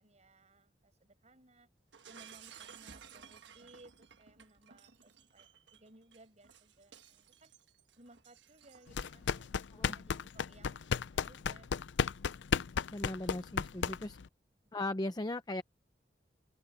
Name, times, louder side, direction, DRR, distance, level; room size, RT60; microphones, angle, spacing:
voice 1, 0.0-1.7 2.1-7.5 8.0-11.8, right 2 dB, 40° right, 7.9 m, -61 dB
Shatter, 1.9-9.3, right 7 dB, 80° right, 1.3 m, -56 dB
sound 1, 8.9-14.3, left 6 dB, 85° left, 0.5 m, -34 dB
voice 2, 12.9-14.2 14.7-15.6, left 2 dB, 25° left, 0.7 m, -38 dB
open air
head